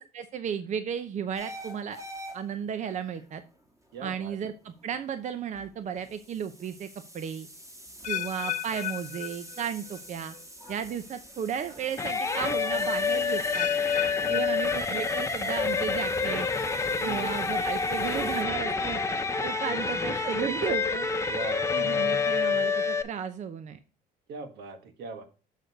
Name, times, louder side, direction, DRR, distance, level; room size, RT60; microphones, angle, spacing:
voice 1, 0.0-2.0 2.3-3.4 4.0-6.9 7.1-7.5 8.1-10.3 10.7-13.7 14.3-16.5 17.0-19.0 19.4-21.1 21.7-23.8, right 8 dB, 45° right, 10 dB, 0.7 m, -34 dB
sound 1, 1.3-18.4, right 1 dB, 20° right, 1.8 m, -47 dB
voice 2, 3.9-4.4 14.2-14.5 17.0-17.3 19.6-19.8 21.3-21.7 24.3-25.2, right 3 dB, 75° right, 9 dB, 1.3 m, -40 dB
sound 2, 8.0-10.1 10.3-10.8 11.4-11.5 13.5-15.5 15.8-16.2 16.9-17.0, left 12 dB, 50° left, 0.5 m, -35 dB
sound 3, 12.0-23.0, left 4 dB, 15° left, 0.9 m, -28 dB
6.6 x 6.2 x 4.0 m, 0.36 s
cardioid pair, 110°, 17 cm